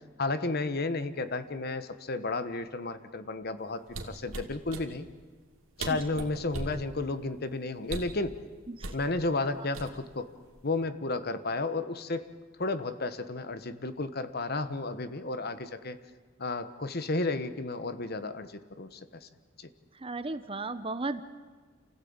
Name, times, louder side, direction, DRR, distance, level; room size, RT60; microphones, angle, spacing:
voice 1, 0.2-5.0 5.8-8.4 8.9-10.3 10.6-12.3 12.6-16.0 16.4-19.0 19.6-19.7, left 3 dB, 50° left, 12 dB, 1.1 m, -32 dB
sound 1, 3.9-4.9 5.5-5.6 5.8-6.8 7.8-8.2 8.8-9.0 9.7-10.2 10.6-10.8, right 2 dB, 90° right, 2.5 m, -38 dB
voice 2, 19.9-21.2, right 3 dB, 25° right, 12 dB, 0.8 m, -35 dB
28.0 x 15.5 x 8.8 m, 1.4 s
head